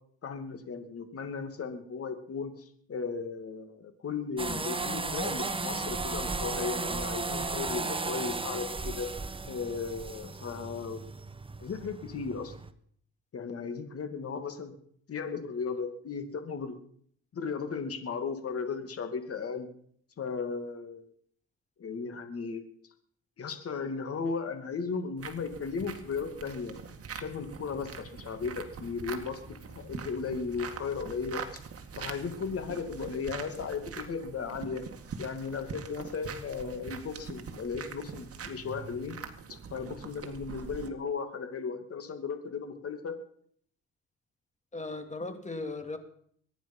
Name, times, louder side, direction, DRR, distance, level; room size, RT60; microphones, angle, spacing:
voice 1, 0.2-9.1 9.5-11.0 11.6-12.5 13.3-14.7 15.1-16.8 17.3-19.7 20.2-21.1 21.8-22.6 23.4-26.7 27.1-31.6 32.0-34.8 35.2-39.2 39.7-43.2, left 5 dB, 50° left, 8 dB, 2.6 m, -36 dB
sound 1, 4.4-12.7, right 3 dB, 15° right, 1.2 m, -35 dB
sound 2, 25.2-40.9, right 6 dB, 50° right, 2.0 m, -43 dB
voice 2, 44.7-46.0, left 2 dB, 25° left, 8 dB, 2.6 m, -37 dB
23.0 x 10.0 x 5.7 m, 0.62 s
cardioid pair, 90°, 30 cm